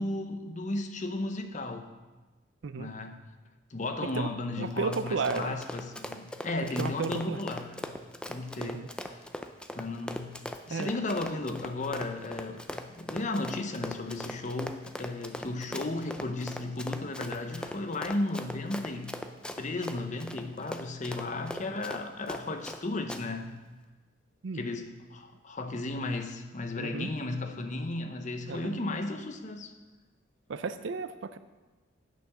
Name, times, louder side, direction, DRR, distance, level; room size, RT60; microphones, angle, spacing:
voice 1, 0.0-1.9 2.8-3.2 3.7-7.9 8.3-9.2 9.7-10.4 10.7-19.2 19.6-23.6 24.5-29.7, left 2 dB, 40° left, 6 dB, 0.8 m, -34 dB
Run, 4.6-22.8 23.1-23.2, left 1 dB, 5° left, 0.4 m, -40 dB
voice 2, 4.6-5.6 6.8-7.4 8.6-8.9 10.7-10.9 24.4-24.6 26.8-27.1 28.5-28.8 30.5-31.4, right 4 dB, 70° right, 12 dB, 0.5 m, -33 dB
9.3 x 5.8 x 6.1 m, 1.2 s
head